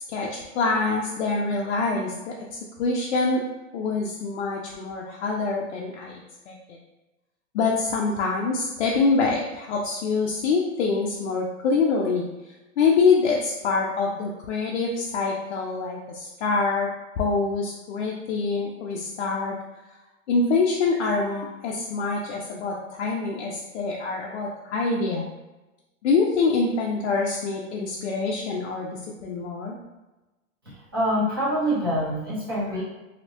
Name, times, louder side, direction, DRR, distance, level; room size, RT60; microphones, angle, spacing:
voice 1, 0.1-3.4 3.7-6.1 6.5-6.8 7.5-12.3 12.8-16.9 17.2-19.6 20.3-25.2 26.0-29.8, left 4 dB, 60° left, -2 dB, 0.5 m, -25 dB
voice 2, 30.6-32.8, equal, 20° right, -9 dB, 0.4 m, -25 dB
3.1 x 2.8 x 2.7 m, 1.0 s
supercardioid pair, 175°, 40 cm